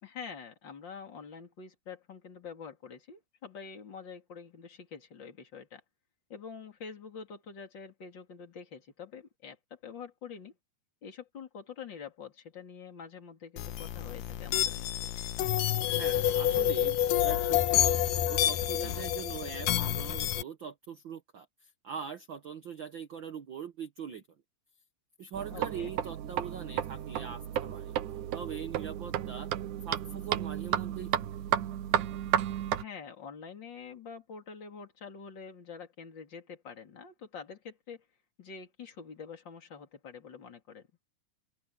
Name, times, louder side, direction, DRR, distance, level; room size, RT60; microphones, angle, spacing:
voice 1, 0.0-5.8 6.3-10.6 11.0-15.1 25.5-25.9 32.8-38.0 38.4-40.9, left 6 dB, 35° left, 3.7 m, -46 dB
sound 1, 13.6-20.4, left 11 dB, 80° left, 2.6 m, -28 dB
voice 2, 15.8-18.0 18.3-24.2 25.2-27.9 28.3-29.5 29.8-31.1, right 7 dB, 55° right, 1.4 m, -42 dB
sound 2, 25.3-32.8, right 11 dB, 75° right, 2.5 m, -33 dB
open air
omnidirectional pair, 3.7 m